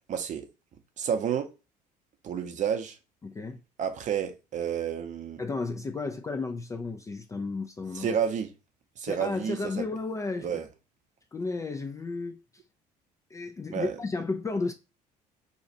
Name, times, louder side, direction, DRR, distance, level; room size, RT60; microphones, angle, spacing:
voice 1, 0.1-0.5 1.0-1.5 2.2-3.0 3.8-5.4 7.9-8.5 9.0-9.8 10.4-10.7 13.7-14.0, right 8 dB, 35° right, 0.7 m, -30 dB
voice 2, 3.2-3.6 5.4-8.2 9.0-10.5 11.3-12.4 13.3-14.7, left 3 dB, 15° left, 0.4 m, -33 dB
2.8 x 2.4 x 4.2 m
figure-of-eight pair, 55°, 21 cm